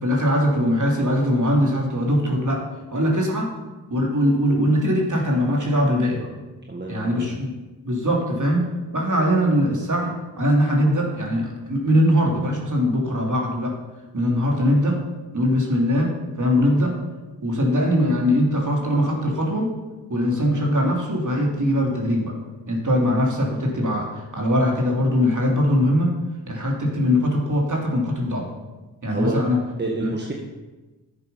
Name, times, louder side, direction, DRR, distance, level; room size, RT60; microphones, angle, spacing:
voice 1, 0.0-2.6 2.9-3.5 3.9-6.3 6.9-7.5 7.8-8.7 8.9-13.7 14.1-15.0 15.3-16.1 16.4-16.9 17.4-19.7 20.1-22.3 22.7-26.1 26.5-28.5 29.0-29.6 30.0-30.1, equal, 45° right, -1 dB, 3.1 m, -21 dB
voice 2, 6.7-7.3 29.1-29.4 29.8-30.3, right 2 dB, 25° right, -1 dB, 1.6 m, -28 dB
11.0 x 8.0 x 5.6 m, 1.2 s
cardioid pair, 60°, 41 cm